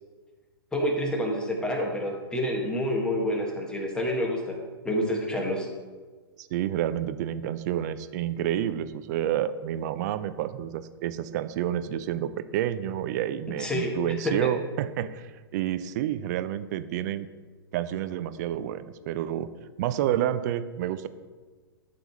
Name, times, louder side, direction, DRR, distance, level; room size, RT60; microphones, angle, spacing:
voice 1, 0.7-4.6 4.8-5.7 13.6-14.5, equal, 5° left, -1 dB, 1.8 m, -28 dB
voice 2, 6.4-17.3 17.7-19.5 19.8-21.1, right 11 dB, 45° right, 13 dB, 0.6 m, -29 dB
12.5 x 6.9 x 3.1 m, 1.4 s
figure-of-eight pair, 110°, 13 cm